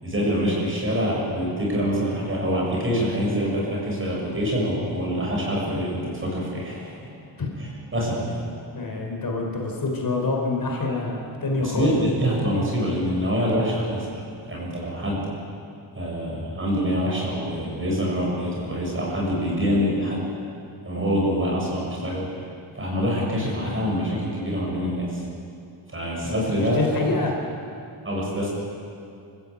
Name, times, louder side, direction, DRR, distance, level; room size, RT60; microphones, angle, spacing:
voice 1, 0.0-7.1 7.6-8.4 11.6-14.2 14.5-15.2 15.9-20.2 20.8-22.3 22.8-25.2 25.9-26.8 28.0-28.5, equal, 25° right, -3 dB, 7.3 m, -25 dB
voice 2, 8.7-12.0 26.2-27.3, left 3 dB, 50° left, 0 dB, 4.1 m, -26 dB
28.5 x 15.0 x 8.4 m, 2.4 s
wide cardioid pair, 160°, 45 cm